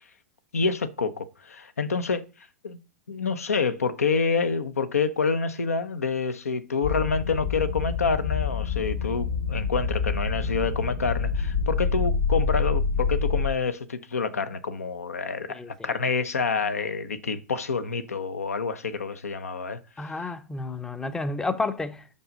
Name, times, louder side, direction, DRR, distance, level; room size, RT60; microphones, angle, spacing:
voice 1, 0.5-2.2 2.6-2.8 3.1-20.1, left 5 dB, 85° left, 0.7 m, -27 dB
sound 1, 6.8-13.5, left 5 dB, 70° left, 1.2 m, -27 dB
voice 2, 20.0-22.1, left 3 dB, 10° left, 0.5 m, -30 dB
5.5 x 5.4 x 5.0 m
hypercardioid pair, 115°, 8 cm